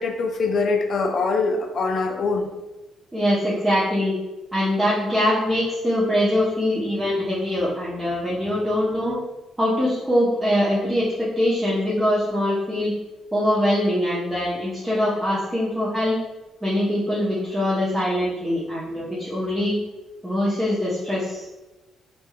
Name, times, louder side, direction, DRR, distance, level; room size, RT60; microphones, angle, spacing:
voice 1, 0.0-2.5, left 3 dB, 55° left, 4 dB, 0.4 m, -23 dB
voice 2, 3.1-4.2 4.5-9.2 9.6-12.9 13.3-16.2 16.6-19.8 20.2-21.5, left 1 dB, 15° right, -8 dB, 0.6 m, -23 dB
3.1 x 2.2 x 2.2 m, 1.1 s
cardioid pair, 90°, 0 cm